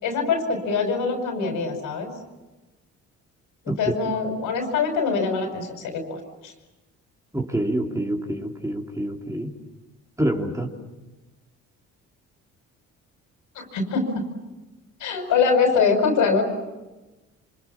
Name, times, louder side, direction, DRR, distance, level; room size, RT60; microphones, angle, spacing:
voice 1, 0.0-2.1 3.8-6.2 6.4-6.5 13.6-14.0 15.0-16.4, left 5 dB, 85° left, 4 dB, 5.6 m, -23 dB
voice 2, 7.3-9.5 10.2-10.7, right 1 dB, 10° right, 1 dB, 3.3 m, -26 dB
27.5 x 25.5 x 7.3 m, 1.1 s
cardioid pair, 90°, 30 cm